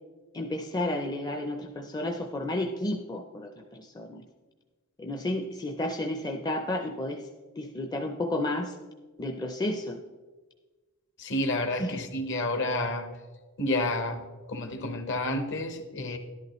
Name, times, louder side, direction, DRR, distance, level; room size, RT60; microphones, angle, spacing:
voice 1, 0.3-4.3 5.0-7.3 7.6-8.7 9.2-10.0 11.8-12.0, left 1 dB, 20° left, 0.5 m, -32 dB
voice 2, 11.2-13.1 13.6-16.2, left 1 dB, 55° left, 1.0 m, -30 dB
12.0 x 11.0 x 3.1 m
head